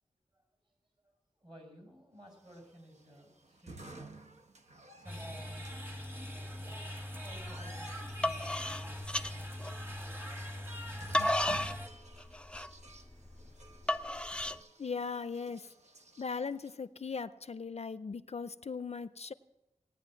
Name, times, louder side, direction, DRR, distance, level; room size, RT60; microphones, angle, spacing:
voice 1, 0.3-0.7 1.0-1.1 1.4-4.2 5.0-9.0, equal, 35° right, 1 dB, 6.1 m, -56 dB
sound 1, 2.4-16.7, right 2 dB, 60° right, 1.1 m, -54 dB
sound 2, 5.1-11.9, left 1 dB, 15° right, 2.0 m, -42 dB
sound 3, 7.4-7.7 8.0-10.1 10.7-14.6, left 1 dB, 10° left, 0.5 m, -33 dB
voice 2, 14.8-15.7 16.2-19.3, left 5 dB, 55° left, 14 dB, 0.5 m, -38 dB
18.0 x 9.7 x 7.6 m, 0.94 s
wide cardioid pair, 70°, 13 cm